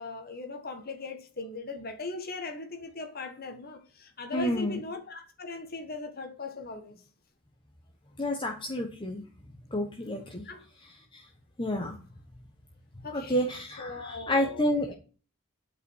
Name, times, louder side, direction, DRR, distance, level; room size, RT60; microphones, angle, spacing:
voice 1, 0.0-7.0 10.4-10.6 13.0-13.4 13.8-14.9, left 3 dB, 50° left, 1.5 m, -39 dB
voice 2, 4.3-4.8 8.2-9.2 9.7-10.5 11.1-11.2 11.6-12.0 13.1-14.9, left 1 dB, 25° left, 1.2 m, -29 dB
8.6 x 5.3 x 6.3 m
head